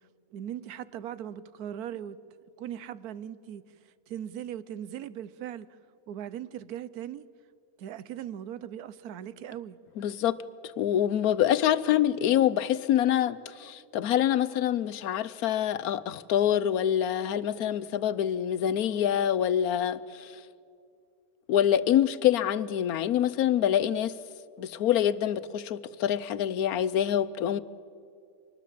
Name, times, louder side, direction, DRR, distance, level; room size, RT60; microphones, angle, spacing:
voice 1, 0.3-2.2 2.6-3.6 4.1-5.7 6.1-7.3 7.8-9.8, right 10 dB, 80° right, 1.3 m, -39 dB
voice 2, 10.0-10.4 10.8-20.3 21.5-24.1 24.6-27.6, left 10 dB, 75° left, 1.2 m, -26 dB
25.5 x 20.0 x 7.6 m
omnidirectional pair, 1.6 m